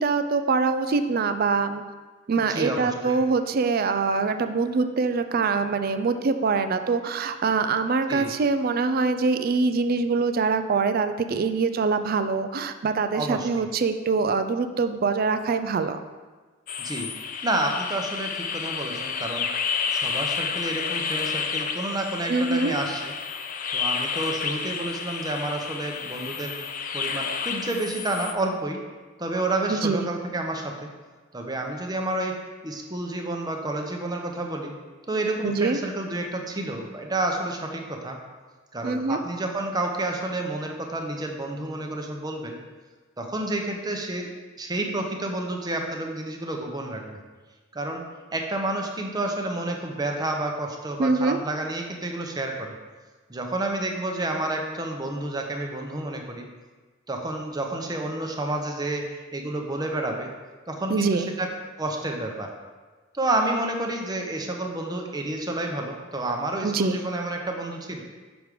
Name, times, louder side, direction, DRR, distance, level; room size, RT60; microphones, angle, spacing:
voice 1, 0.0-1.8 2.3-16.0 22.3-22.7 29.7-30.1 35.4-35.8 38.8-39.2 51.0-51.4 60.9-61.3 66.6-67.0, right 4 dB, 50° right, 9 dB, 0.4 m, -24 dB
voice 2, 2.5-3.2 8.1-8.3 13.1-13.7 16.8-17.1 17.4-19.5 19.9-23.1 23.7-26.5 26.9-28.8 29.2-30.9 31.3-32.4 32.6-34.8 35.1-38.2 38.7-42.6 43.2-44.3 44.6-47.2 47.7-48.0 48.3-52.7 53.3-56.5 57.1-59.0 59.3-60.3 60.7-61.5 61.8-62.5 63.1-68.0, right 2 dB, 20° right, 2 dB, 0.7 m, -30 dB
sound 1, 16.7-28.3, left 6 dB, 40° left, 0.4 m, -30 dB
6.1 x 4.8 x 5.2 m, 1.3 s
head